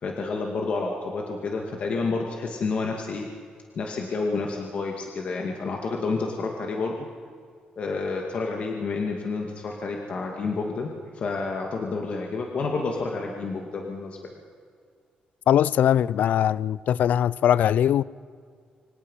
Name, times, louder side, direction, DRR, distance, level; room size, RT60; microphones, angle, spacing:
voice 1, 0.0-3.3 3.8-7.0 7.8-14.4, left 4 dB, 45° left, 2.3 m, -29 dB
voice 2, 15.5-18.0, left 10 dB, 65° left, 0.5 m, -21 dB
27.5 x 25.5 x 5.7 m
cardioid pair, 145°, 3 cm